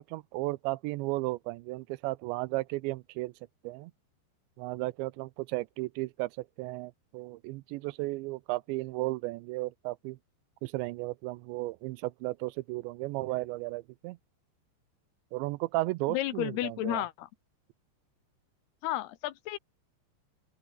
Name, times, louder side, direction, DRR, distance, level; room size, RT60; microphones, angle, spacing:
voice 1, 0.0-3.3 3.6-3.9 4.6-10.2 10.6-14.2 15.3-17.0, right 21 dB, 85° right, 2.9 m, -34 dB
voice 2, 16.1-17.3 18.8-19.6, left 15 dB, 75° left, 2.7 m, -32 dB
open air
omnidirectional pair, 5.2 m